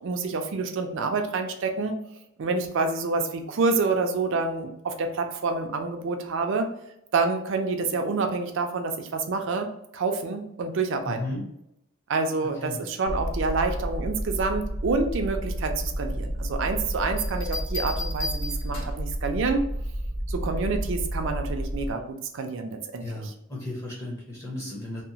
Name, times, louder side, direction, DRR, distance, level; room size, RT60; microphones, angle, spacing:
voice 1, 0.0-2.0 2.4-6.7 7.1-11.4 12.1-19.7 20.3-23.3, right 4 dB, 60° right, 5 dB, 0.4 m, -28 dB
voice 2, 11.1-11.4 12.6-12.8 23.0-25.0, left 1 dB, 15° left, -4 dB, 0.6 m, -34 dB
sound 1, 13.0-21.9, equal, 70° left, 1.5 m, -31 dB
sound 2, 17.2-19.1 20.7-21.1, left 2 dB, 90° left, 1.5 m, -35 dB
2.9 x 2.0 x 2.6 m, 0.79 s
head